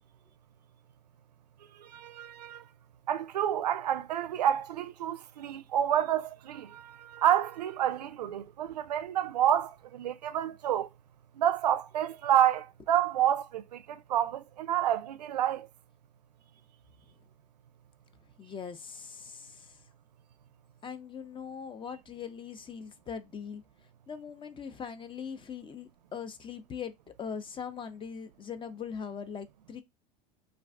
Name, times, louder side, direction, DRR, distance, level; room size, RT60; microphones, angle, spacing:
voice 1, 1.8-2.6 3.1-10.9 11.4-15.7, right 10 dB, 90° right, 0.4 m, -29 dB
voice 2, 18.4-19.8 20.8-23.6 24.1-26.9 27.2-29.8, left 7 dB, 25° left, 0.5 m, -41 dB
2.4 x 2.4 x 3.4 m
hypercardioid pair, 85°, 20 cm